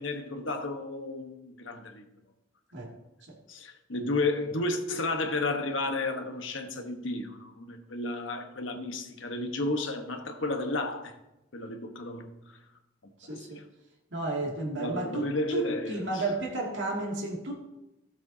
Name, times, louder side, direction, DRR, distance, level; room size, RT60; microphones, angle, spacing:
voice 1, 0.0-2.0 3.5-11.2 11.5-12.6 13.0-13.1 14.8-16.2, left 2 dB, 85° left, 1.2 m, -32 dB
voice 2, 13.2-13.6 14.1-17.6, right 2 dB, 75° right, 2.3 m, -33 dB
16.0 x 7.4 x 2.8 m
head